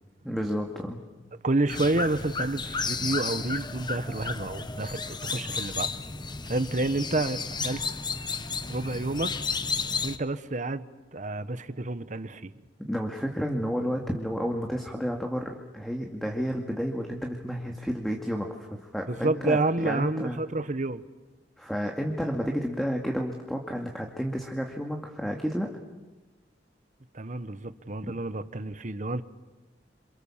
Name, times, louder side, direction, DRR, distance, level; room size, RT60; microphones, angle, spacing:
voice 1, 0.2-1.0 12.8-20.4 21.6-25.7 28.0-28.1, equal, ahead, 1 dB, 2.1 m, -31 dB
voice 2, 1.4-5.9 6.4-7.8 8.7-9.3 10.0-12.6 19.1-21.0 27.1-29.2, right 2 dB, 45° right, 12 dB, 1.1 m, -29 dB
sound 1, 1.7-10.2, left 4 dB, 25° left, 1.1 m, -33 dB
27.5 x 27.5 x 7.3 m, 1.2 s
head